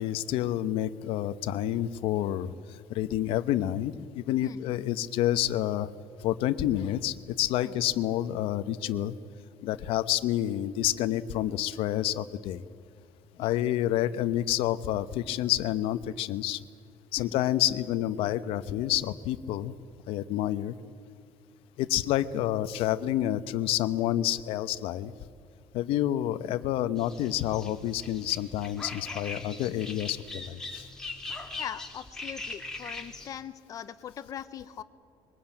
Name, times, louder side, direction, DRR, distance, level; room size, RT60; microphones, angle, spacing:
voice 1, 0.0-5.9 6.2-9.2 9.6-12.6 13.4-16.6 17.1-19.7 20.1-20.8 21.8-25.1 25.7-30.9, left 13 dB, 80° left, 14 dB, 0.9 m, -29 dB
sound 1, 27.0-33.4, left 3 dB, 5° left, 2.2 m, -41 dB
voice 2, 31.6-34.8, left 9 dB, 40° left, 13 dB, 0.8 m, -41 dB
23.0 x 19.0 x 9.0 m, 2.4 s
cardioid pair, 170°, 9 cm